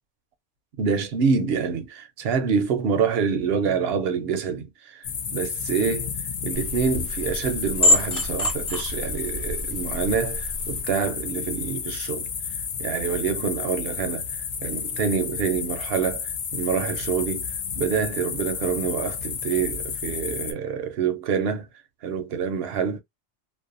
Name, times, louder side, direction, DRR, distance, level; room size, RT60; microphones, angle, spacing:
voice 1, 0.8-6.1 6.4-12.3 12.8-14.2 14.6-17.5 17.7-21.7 22.0-23.0, right 6 dB, 65° right, 0.7 m, -26 dB
sound 1, 5.0-20.5, left 6 dB, 60° left, 0.6 m, -31 dB
sound 2, 6.5-10.8, left 1 dB, 40° left, 1.3 m, -26 dB
2.6 x 2.1 x 2.4 m
omnidirectional pair, 1.2 m